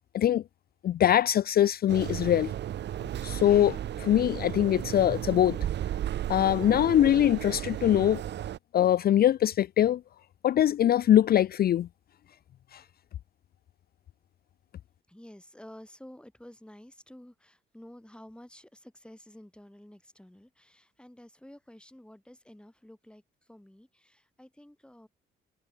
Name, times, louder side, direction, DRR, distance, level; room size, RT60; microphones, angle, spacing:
voice 1, 0.8-2.5 3.2-5.6 6.3-8.2 8.7-10.0 10.4-11.9 12.7-12.8, left 11 dB, 50° left, 0.4 m, -23 dB
sound 1, 1.9-8.6, right 11 dB, 60° right, 0.8 m, -34 dB
voice 2, 15.1-25.1, left 1 dB, 5° left, 6.9 m, -51 dB
cardioid pair, 90°, 20 cm